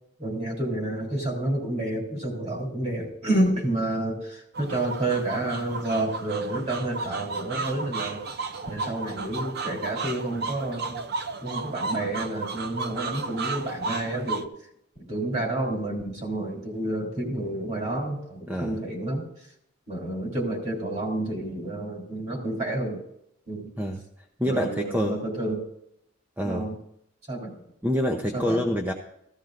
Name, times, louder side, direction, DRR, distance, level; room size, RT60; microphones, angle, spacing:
voice 1, 0.2-11.0 11.4-14.5 15.0-19.3 19.9-23.0 23.5-23.7 24.4-25.6 26.4-26.8 27.3-27.6 28.3-28.6, right 1 dB, 35° right, 0 dB, 3.2 m, -29 dB
sound 1, 4.5-14.4, right 4 dB, 50° right, 0.6 m, -34 dB
voice 2, 18.5-18.8 23.8-24.0 24.4-25.2 26.4-26.7 27.8-28.9, equal, 10° right, 2 dB, 0.6 m, -26 dB
15.5 x 14.5 x 2.5 m, 0.75 s
head